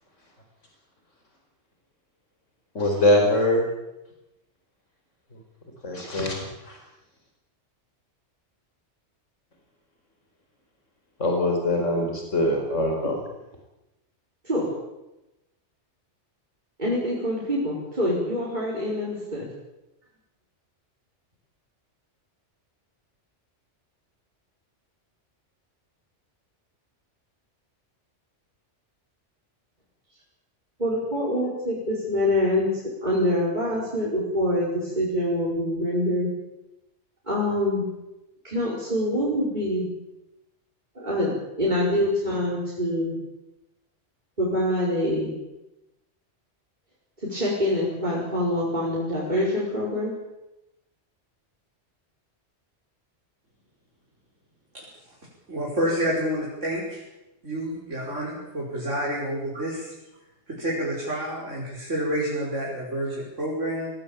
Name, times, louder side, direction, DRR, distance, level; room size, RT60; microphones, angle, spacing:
voice 1, 2.7-3.7 5.8-6.8 11.2-13.2, left 1 dB, 85° left, 2 dB, 4.9 m, -23 dB
voice 2, 16.8-19.5 30.8-36.3 37.3-37.9 38.4-39.9 41.0-43.2 44.4-45.3 47.3-50.1, left 1 dB, 40° right, -6 dB, 5.3 m, -25 dB
voice 3, 55.5-57.0 57.4-59.9 60.5-63.9, equal, 85° right, -5 dB, 5.9 m, -29 dB
20.5 x 17.5 x 8.8 m, 0.96 s
omnidirectional pair, 1.2 m